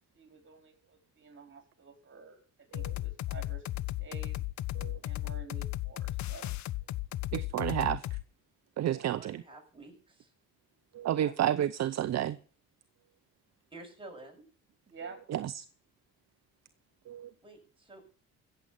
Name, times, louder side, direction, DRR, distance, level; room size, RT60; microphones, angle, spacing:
voice 1, 0.1-3.6 4.0-4.4 5.0-6.5 8.8-9.0 11.0-11.3 14.9-15.2, right 5 dB, 40° right, 4.7 m, -50 dB
sound 1, 2.7-8.2, left 16 dB, 60° left, 0.7 m, -35 dB
voice 2, 7.3-8.1 8.8-9.4 10.9-12.4 15.3-15.6 17.1-17.3, right 11 dB, 55° right, 0.7 m, -31 dB
voice 3, 9.1-10.3 13.7-14.4 17.4-18.0, right 2 dB, 15° right, 7.2 m, -50 dB
15.5 x 7.9 x 7.2 m
cardioid pair, 80°, 32 cm